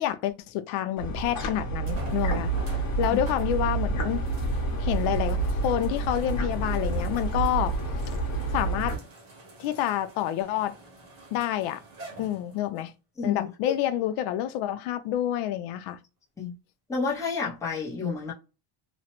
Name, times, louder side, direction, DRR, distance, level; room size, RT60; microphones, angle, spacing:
voice 1, 0.0-2.5 3.0-4.2 4.8-7.7 8.5-9.0 9.6-10.7 11.3-11.8 12.2-12.9 13.2-16.0, left 12 dB, 75° left, 0.5 m, -28 dB
sound 1, 0.8-0.9 1.9-12.9 13.6-13.7 17.2-17.3, right 1 dB, 30° right, 0.8 m, -47 dB
sound 2, 1.0-9.0, right 3 dB, 35° left, 0.9 m, -28 dB
voice 2, 13.2-13.7 16.4-16.5 16.9-18.3, left 5 dB, 5° left, 0.5 m, -30 dB
3.0 x 2.0 x 2.9 m
cardioid pair, 175°, 48 cm